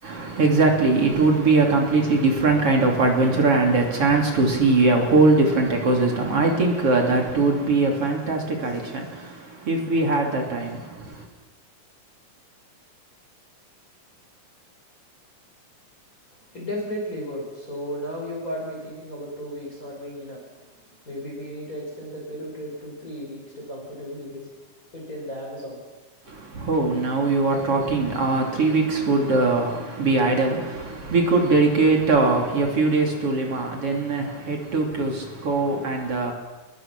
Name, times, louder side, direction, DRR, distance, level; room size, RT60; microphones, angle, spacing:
voice 1, 0.0-11.3 26.3-36.3, right 3 dB, 45° right, 1 dB, 3.8 m, -21 dB
voice 2, 16.5-20.5 21.0-24.5 24.9-25.8, equal, 25° left, -3 dB, 6.4 m, -34 dB
27.5 x 21.0 x 6.1 m, 1.3 s
omnidirectional pair, 3.7 m